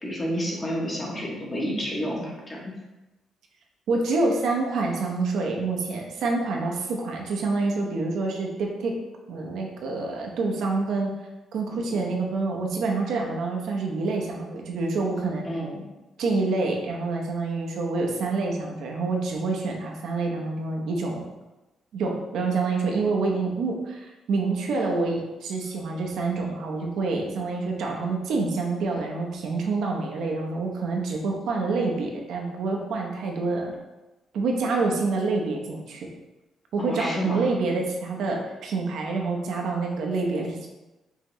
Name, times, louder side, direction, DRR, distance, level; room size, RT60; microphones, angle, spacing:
voice 1, 0.0-2.6 11.9-12.1 15.4-15.8 36.8-37.4, equal, 20° left, -3 dB, 0.9 m, -30 dB
voice 2, 3.9-9.0 9.3-11.1 11.5-15.5 16.2-21.2 21.9-33.7 34.3-36.1 36.7-40.7, right 3 dB, 65° right, 1 dB, 0.7 m, -27 dB
5.6 x 2.9 x 3.0 m, 1.1 s
cardioid pair, 175°, 0 cm